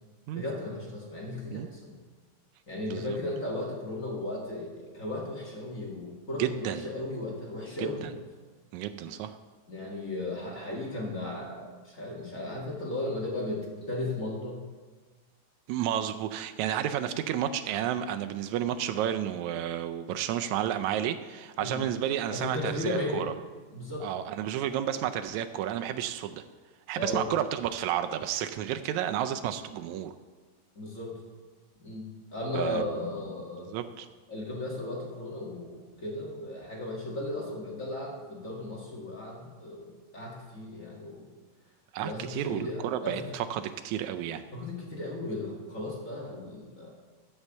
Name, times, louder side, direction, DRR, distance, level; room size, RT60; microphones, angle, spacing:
voice 1, 0.3-1.9 2.7-8.1 9.7-14.6 21.6-21.8 22.3-23.3 23.7-24.1 26.9-27.3 30.7-31.2 31.8-32.0 32.3-33.7 34.3-41.3 42.0-43.4 44.5-46.9, left 2 dB, 30° left, -2 dB, 1.7 m, -36 dB
voice 2, 2.9-3.2 6.4-6.9 7.8-8.1 8.7-9.4 15.7-23.3 24.0-26.4 26.9-30.1 32.5-32.9 33.6-34.1 41.9-44.4, right 10 dB, 85° right, 8 dB, 1.6 m, -31 dB
13.0 x 5.5 x 7.2 m, 1.4 s
omnidirectional pair, 3.9 m